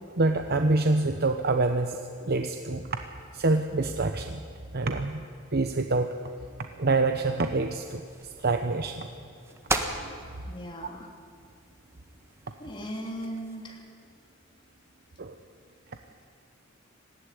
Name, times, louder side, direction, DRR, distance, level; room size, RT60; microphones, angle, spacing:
voice 1, 0.2-2.9 3.3-4.4 4.7-5.2 5.5-6.1 6.8-8.0 8.4-9.1 10.1-10.2 15.2-15.3, right 3 dB, 50° right, 6 dB, 0.9 m, -26 dB
sound 1, 7.6-13.8, right 2 dB, 15° right, 1.5 m, -38 dB
voice 2, 10.4-11.1 12.6-13.8, equal, 25° left, 1 dB, 3.2 m, -38 dB
19.0 x 15.5 x 9.9 m, 2.4 s
head